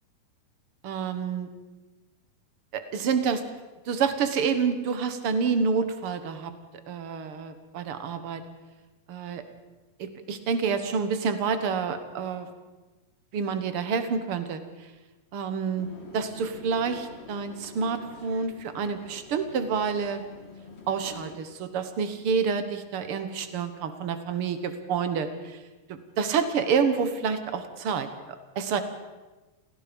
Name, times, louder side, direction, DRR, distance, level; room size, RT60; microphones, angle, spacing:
voice 1, 0.8-1.5 2.7-3.4 3.9-6.5 6.9-8.4 9.1-9.4 10.0-12.5 13.3-14.6 15.3-15.9 16.1-20.2 20.9-25.6 25.9-28.8, right 6 dB, 60° right, 9 dB, 1.5 m, -28 dB
sound 1, 15.8-21.4, left 3 dB, 30° left, 1.1 m, -46 dB
29.0 x 17.0 x 5.4 m, 1.2 s
omnidirectional pair, 4.4 m